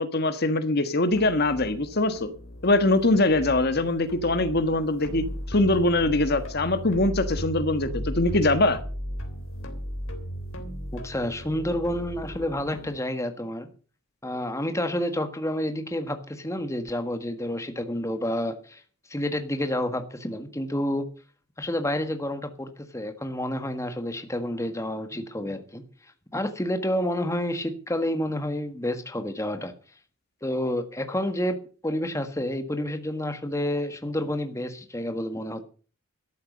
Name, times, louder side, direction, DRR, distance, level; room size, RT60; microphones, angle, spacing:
voice 1, 0.0-2.3 2.6-8.8, left 2 dB, 50° left, 1.5 m, -23 dB
sound 1, 1.1-13.0, equal, 75° left, 3.3 m, -36 dB
voice 2, 10.9-13.7 14.2-18.8 19.1-21.1 21.6-25.8 26.3-29.7 30.4-31.6 31.8-35.6, left 1 dB, 15° left, 1.6 m, -29 dB
13.5 x 11.5 x 5.3 m
head